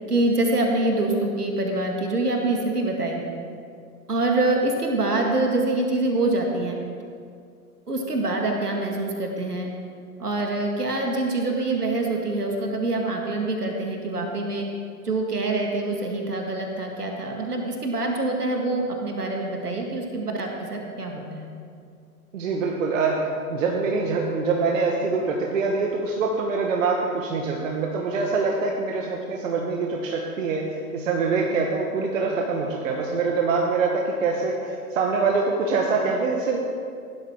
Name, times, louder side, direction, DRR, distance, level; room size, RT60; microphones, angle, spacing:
voice 1, 0.1-3.2 4.1-6.7 7.9-9.7 10.2-14.7 15.0-21.5, right 2 dB, 85° right, 1 dB, 2.0 m, -25 dB
voice 2, 22.3-23.2 23.5-30.7 30.9-36.6, right 4 dB, 55° right, 0 dB, 1.5 m, -24 dB
16.0 x 12.0 x 3.7 m, 2.3 s
figure-of-eight pair, 100°, 45 cm